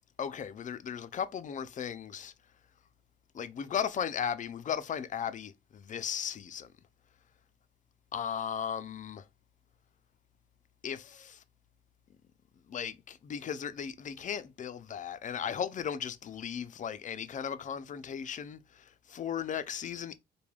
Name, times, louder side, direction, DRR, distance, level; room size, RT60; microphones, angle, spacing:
voice 1, 0.2-2.3 3.3-6.7 8.1-9.3 10.8-11.4 12.7-20.2, left 8 dB, 40° left, 0.4 m, -36 dB
3.3 x 2.2 x 2.2 m
cardioid pair, 90°, 20 cm